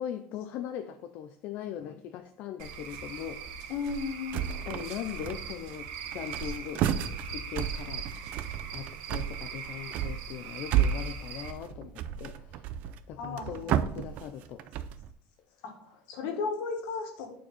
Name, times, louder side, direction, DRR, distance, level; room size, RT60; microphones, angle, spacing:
voice 1, 0.0-3.5 4.5-12.6 13.1-14.6, left 10 dB, 50° left, 8 dB, 0.4 m, -40 dB
Cricket / Frog, 2.6-11.5, right 6 dB, 80° right, 1.1 m, -41 dB
voice 2, 3.7-4.5 13.2-13.9 15.6-17.3, left 5 dB, 70° left, 3 dB, 1.8 m, -35 dB
sound 1, 4.3-4.9 5.2-5.8 6.1-15.1, right 9 dB, 50° right, 0.4 m, -32 dB
8.8 x 4.6 x 4.1 m, 0.65 s
cardioid pair, 175°, 4 cm